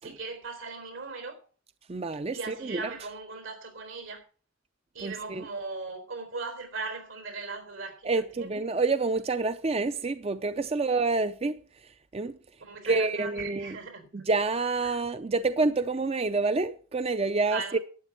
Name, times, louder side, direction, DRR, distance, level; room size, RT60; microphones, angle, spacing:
voice 1, 0.0-1.4 2.3-4.2 4.9-8.5 12.6-14.1 17.5-17.8, right 4 dB, 85° right, 3.9 m, -38 dB
voice 2, 1.9-2.9 5.0-5.5 8.0-12.3 12.8-13.8 14.1-17.8, right 3 dB, 30° right, 0.5 m, -28 dB
12.0 x 9.1 x 5.8 m
head